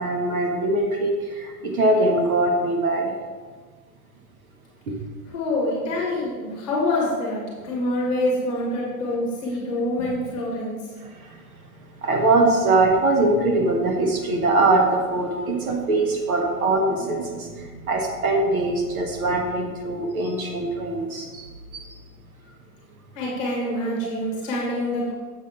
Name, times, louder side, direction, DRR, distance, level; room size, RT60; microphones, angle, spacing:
voice 1, 0.0-3.1 4.9-5.0 12.0-21.5 21.7-21.9 24.0-24.1, right 2 dB, 60° right, 1 dB, 1.4 m, -22 dB
voice 2, 5.3-10.7 23.1-25.1, left 1 dB, 20° left, -4 dB, 1.5 m, -26 dB
7.4 x 4.1 x 5.6 m, 1.4 s
hypercardioid pair, 175°, 48 cm